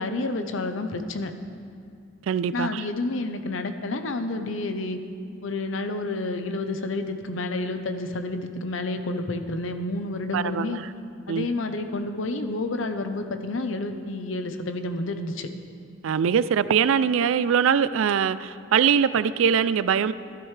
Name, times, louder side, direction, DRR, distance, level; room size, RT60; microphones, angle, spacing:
voice 1, 0.0-1.3 2.5-5.0 5.4-10.8 11.3-15.5, left 2 dB, 80° left, 0.7 m, -29 dB
voice 2, 2.3-2.8 10.3-10.9 11.3-11.5 16.0-20.1, right 7 dB, 85° right, 0.3 m, -22 dB
13.5 x 12.0 x 3.3 m
head